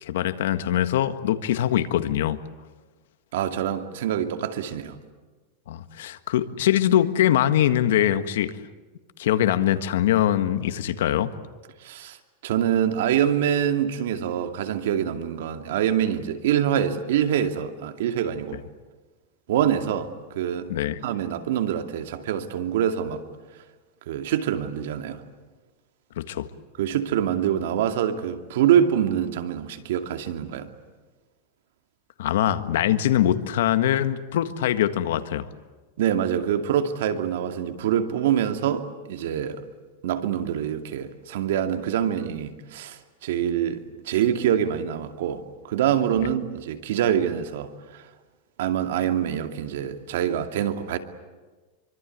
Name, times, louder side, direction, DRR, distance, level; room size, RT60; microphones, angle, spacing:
voice 1, 0.0-2.4 5.7-8.6 9.2-11.3 20.7-21.1 26.2-26.5 32.2-35.5, left 11 dB, 80° left, 1.6 m, -23 dB
voice 2, 3.3-5.0 11.8-12.2 12.4-18.6 19.5-20.7 21.0-23.2 24.1-25.2 26.8-30.7 36.0-39.6 40.0-48.0 48.6-51.0, right 9 dB, 75° right, 2.5 m, -25 dB
25.5 x 24.5 x 9.5 m
supercardioid pair, 160°, 0 cm